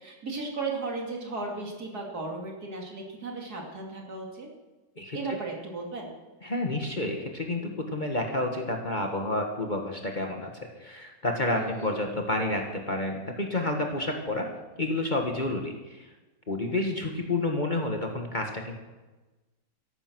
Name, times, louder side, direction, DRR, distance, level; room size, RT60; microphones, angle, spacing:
voice 1, 0.0-4.5 5.1-6.1 11.5-11.9, right 3 dB, 65° right, 0 dB, 3.2 m, -35 dB
voice 2, 6.4-10.5 10.8-14.5 14.8-16.1 16.5-18.8, left 2 dB, 30° left, 2 dB, 1.6 m, -30 dB
14.0 x 11.5 x 6.2 m, 1.1 s
omnidirectional pair, 1.8 m